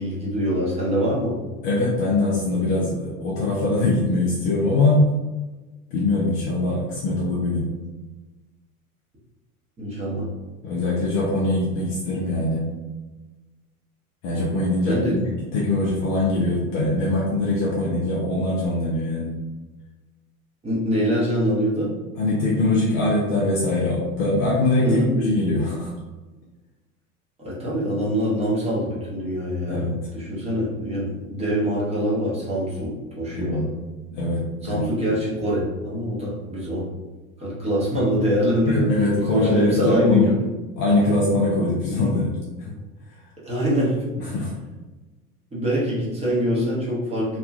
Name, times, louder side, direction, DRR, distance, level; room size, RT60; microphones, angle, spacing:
voice 1, 0.0-1.4 9.8-10.3 14.9-15.2 20.6-21.9 24.8-25.3 27.4-29.9 30.1-33.7 34.6-36.9 37.4-40.3 43.4-44.0 44.3-44.4 45.5-47.4, equal, 15° right, -6 dB, 0.8 m, -24 dB
voice 2, 1.6-5.1 5.9-7.7 10.6-12.7 14.2-19.3 22.2-25.9 29.7-29.9 33.3-33.6 34.1-34.8 38.7-40.3 40.8-42.8 44.2-44.5, left 2 dB, 30° left, -4 dB, 0.5 m, -22 dB
2.9 x 2.3 x 2.3 m, 1.2 s
figure-of-eight pair, 80°, 45 cm